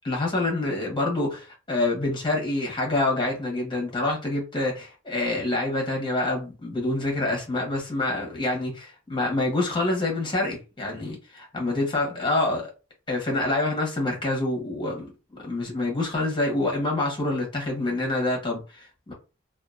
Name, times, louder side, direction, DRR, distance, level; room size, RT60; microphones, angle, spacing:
voice 1, 0.0-12.6 13.1-15.1 15.4-19.1, left 2 dB, 25° left, 1.1 m, -26 dB
2.7 x 2.3 x 2.4 m
head